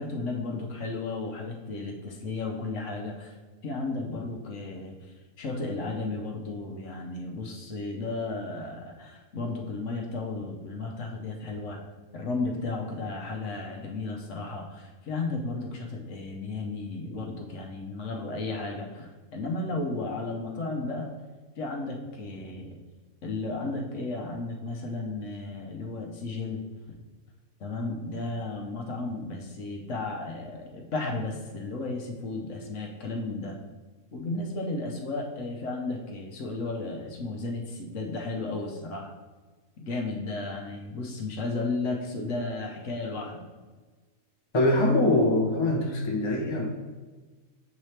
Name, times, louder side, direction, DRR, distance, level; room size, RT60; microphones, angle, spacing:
voice 1, 0.0-3.3 3.6-5.0 5.4-11.8 12.1-21.1 21.6-22.8 23.2-26.6 27.6-33.6 34.1-39.1 39.8-43.4, left 3 dB, 60° left, 0 dB, 1.1 m, -34 dB
voice 2, 44.5-46.6, left 1 dB, 25° left, 0 dB, 0.7 m, -23 dB
7.2 x 4.4 x 3.3 m, 1.3 s
omnidirectional pair, 1.5 m